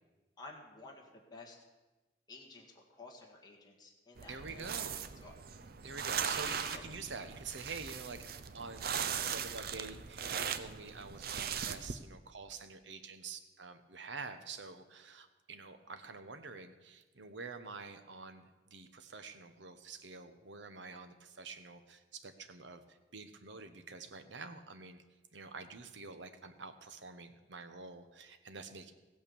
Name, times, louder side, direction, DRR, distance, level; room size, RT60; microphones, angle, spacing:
voice 1, 0.4-1.6 2.3-4.7 5.2-5.3 6.4-6.8, left 3 dB, 25° left, -1 dB, 1.8 m, -52 dB
sound 1, 4.2-11.9, right 7 dB, 55° right, 0.7 m, -39 dB
voice 2, 4.3-5.1 5.8-8.3 8.5-25.0 25.3-28.9, right 4 dB, 80° right, 9 dB, 1.1 m, -47 dB
15.5 x 8.8 x 7.0 m, 1.2 s
head